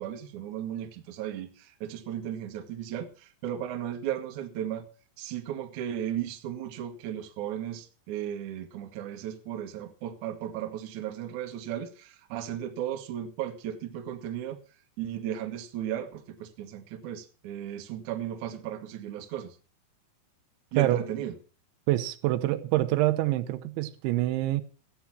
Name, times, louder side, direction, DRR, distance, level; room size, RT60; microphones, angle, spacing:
voice 1, 0.0-4.9 5.2-14.6 15.0-19.6 20.7-21.3, right 10 dB, 65° right, 2.0 m, -35 dB
voice 2, 21.9-24.6, right 15 dB, 85° right, 3.1 m, -26 dB
14.0 x 8.8 x 5.9 m
omnidirectional pair, 5.4 m